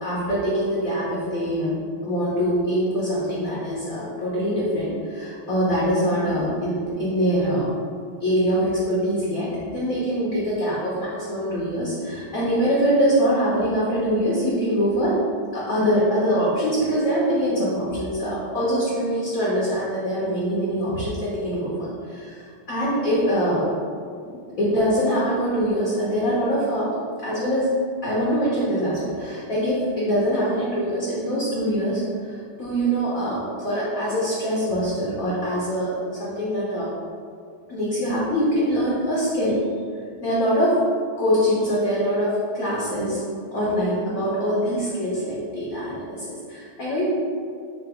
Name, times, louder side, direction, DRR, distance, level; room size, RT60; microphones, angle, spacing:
voice 1, 0.0-1.7 2.0-7.7 8.2-15.2 15.5-23.7 24.2-26.9 27.2-27.7 28.0-36.9 37.7-39.6 40.2-40.8 41.2-43.2 43.5-47.0, equal, 55° left, -7 dB, 1.0 m, -23 dB
3.9 x 2.7 x 4.8 m, 2.2 s
omnidirectional pair, 2.3 m